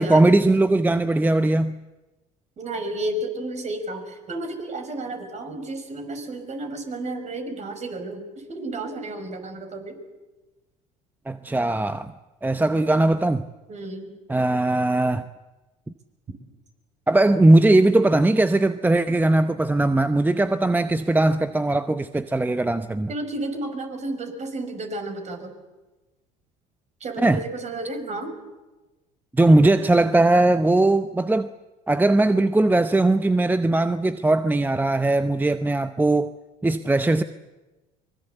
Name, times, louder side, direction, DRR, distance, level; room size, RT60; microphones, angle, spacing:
voice 1, 0.0-1.7 11.3-12.1 12.4-13.4 14.3-15.2 17.1-23.1 27.2-27.4 29.3-31.5 31.9-36.3 36.6-37.2, right 2 dB, 10° right, 0.8 m, -19 dB
voice 2, 2.6-10.0 13.7-14.1 23.1-25.5 27.0-28.3, right 2 dB, 40° right, 5.9 m, -32 dB
24.5 x 22.0 x 8.2 m
hypercardioid pair, 80°, 18 cm